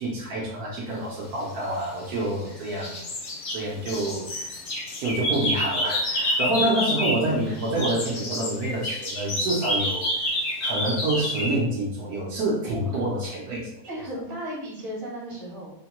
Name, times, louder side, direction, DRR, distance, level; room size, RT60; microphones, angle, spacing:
voice 1, 0.0-3.0 3.5-4.6 5.0-10.1 10.6-13.6, right 1 dB, 80° right, -4 dB, 1.2 m, -27 dB
sound 1, 1.7-2.5 2.8-7.3 7.6-11.6, left 1 dB, 55° left, 1.0 m, -28 dB
voice 2, 12.7-13.0 13.9-15.7, equal, 40° right, -6 dB, 1.5 m, -35 dB
3.7 x 2.2 x 2.9 m, 0.82 s
omnidirectional pair, 1.6 m